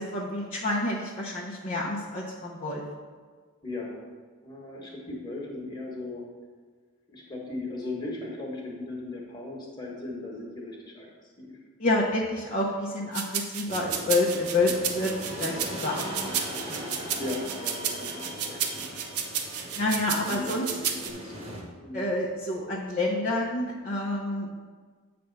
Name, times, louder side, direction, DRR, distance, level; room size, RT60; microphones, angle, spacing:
voice 1, 0.0-2.8 11.8-16.4 16.7-16.8 19.8-20.7 21.9-24.5, left 2 dB, 35° left, -5 dB, 0.7 m, -28 dB
voice 2, 3.6-4.0 4.4-6.2 7.1-11.0 11.4-11.5 14.7-14.8 17.2-18.9 20.3-22.0, left 2 dB, 20° left, -2 dB, 1.4 m, -37 dB
sound 1, 13.1-21.1, right 8 dB, 85° right, 0.8 m, -32 dB
sound 2, 13.7-21.6, equal, 30° right, 1.2 m, -39 dB
8.3 x 3.4 x 6.6 m, 1.6 s
head